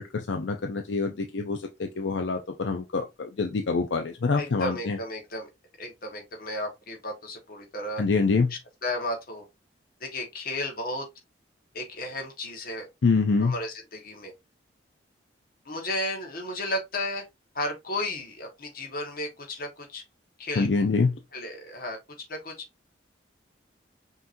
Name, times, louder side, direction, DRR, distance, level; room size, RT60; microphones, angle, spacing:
voice 1, 0.0-5.0 8.0-8.5 13.0-13.5 20.6-21.1, left 4 dB, 75° left, 0.5 m, -25 dB
voice 2, 4.4-5.5 5.8-8.0 8.5-9.4 10.0-11.0 11.7-12.9 13.4-14.3 15.6-17.2 17.5-20.0 20.4-20.7 21.3-22.0 22.3-22.5, left 1 dB, 50° left, 1.3 m, -33 dB
5.6 x 3.0 x 2.6 m
head